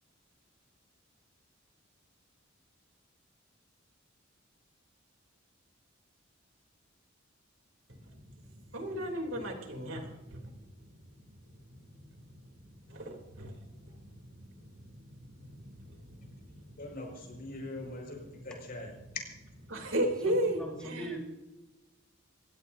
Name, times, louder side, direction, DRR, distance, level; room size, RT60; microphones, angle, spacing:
voice 1, 8.7-10.5 11.7-16.6 17.1-17.4 18.2-18.4 19.7-21.1, right 1 dB, 85° right, 2 dB, 3.2 m, -37 dB
voice 2, 16.8-18.9 19.1-19.2, left 2 dB, 50° left, 1 dB, 5.7 m, -41 dB
voice 3, 20.2-21.2, right 1 dB, 5° left, -1 dB, 4.1 m, -41 dB
27.5 x 16.5 x 2.7 m, 1.1 s
head